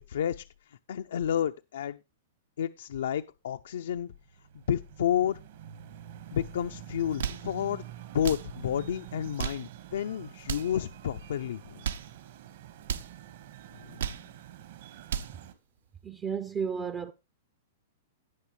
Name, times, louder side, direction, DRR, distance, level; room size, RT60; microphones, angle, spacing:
voice 1, 0.0-2.0 2.6-4.1 4.7-5.4 6.3-7.9 8.1-11.9 13.8-14.2, left 9 dB, 75° left, 0.4 m, -31 dB
sound 1, 3.9-15.5, right 12 dB, 60° right, 1.4 m, -47 dB
sound 2, 7.0-7.5 8.2-8.5 9.2-9.7 10.4-10.8 11.6-12.1 12.8-13.1 13.8-14.3 14.9-15.4, right 8 dB, 80° right, 0.8 m, -35 dB
voice 2, 16.0-17.1, right 6 dB, 15° right, 0.4 m, -32 dB
18.0 x 6.0 x 3.2 m
hypercardioid pair, 160°, 0 cm